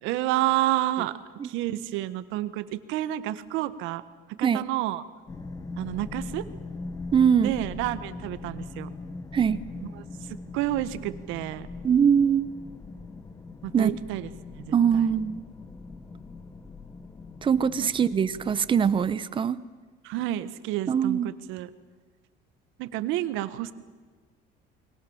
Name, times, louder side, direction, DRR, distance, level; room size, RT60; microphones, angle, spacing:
voice 1, 0.0-1.2 1.4-4.0 4.4-5.0 5.8-6.5 7.4-8.9 10.0-11.7 13.6-15.1 17.8-17.9 20.0-21.7 22.8-23.7, right 15 dB, 80° right, 13 dB, 1.6 m, -30 dB
sound 1, 5.3-19.1, left 3 dB, 15° left, 1.4 m, -41 dB
voice 2, 7.1-7.5 9.3-9.7 11.8-12.5 13.7-14.0 14.7-15.4 17.4-19.6 20.9-21.3, right 7 dB, 25° right, 16 dB, 0.9 m, -22 dB
29.5 x 22.5 x 7.3 m, 1.5 s
cardioid pair, 160°, 20 cm